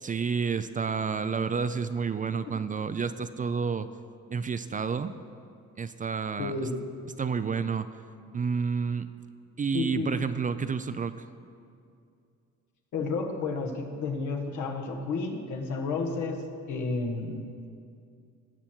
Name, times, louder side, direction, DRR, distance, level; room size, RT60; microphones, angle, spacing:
voice 1, 0.0-3.9 4.3-5.1 5.8-6.5 7.2-7.9 8.3-9.1 9.6-11.2, right 5 dB, 25° right, 12 dB, 0.4 m, -30 dB
voice 2, 6.4-6.8 9.7-10.1 12.9-16.4 16.7-17.4, left 3 dB, 75° left, 2 dB, 1.4 m, -31 dB
18.5 x 6.2 x 4.4 m, 2.4 s
cardioid pair, 90°, 30 cm